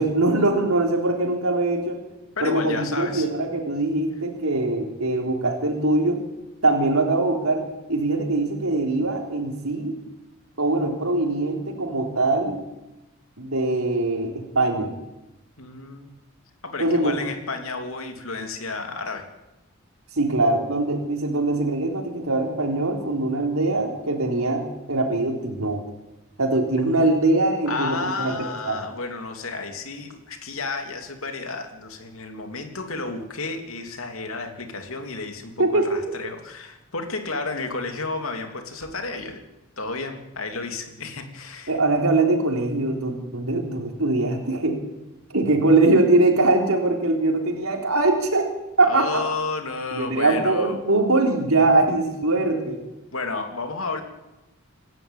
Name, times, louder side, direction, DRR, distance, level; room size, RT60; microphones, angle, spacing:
voice 1, 0.0-2.0 2.4-6.2 6.6-10.0 10.6-12.6 13.4-14.9 16.8-17.2 20.1-25.8 26.4-28.8 35.6-35.9 41.7-44.8 45.3-48.5 48.8-49.2 49.9-52.8, right 2 dB, 85° right, 2 dB, 3.9 m, -22 dB
voice 2, 2.4-3.3 15.6-16.1 16.6-19.3 27.7-39.4 39.8-41.7 48.8-50.7 53.1-54.0, left 3 dB, 75° left, 5 dB, 2.8 m, -31 dB
27.0 x 12.5 x 8.9 m, 0.97 s
head